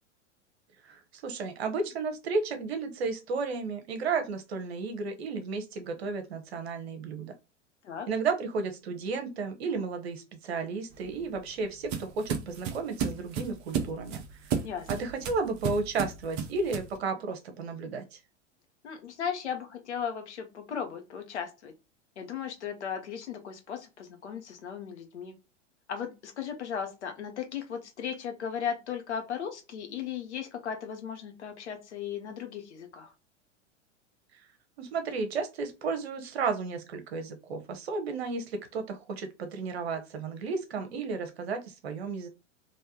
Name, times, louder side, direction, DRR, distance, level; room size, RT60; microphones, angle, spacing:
voice 1, 0.8-7.3 8.1-14.2 14.9-18.2 34.8-42.3, right 4 dB, 55° right, 7 dB, 0.9 m, -33 dB
sound 1, 10.9-17.0, right 7 dB, 30° right, 0.6 m, -34 dB
voice 2, 14.6-15.0 18.8-21.7 22.2-25.3 25.9-33.1, left 7 dB, 65° left, 5 dB, 1.0 m, -36 dB
3.4 x 2.6 x 2.7 m, 0.28 s
figure-of-eight pair, 95°, 37 cm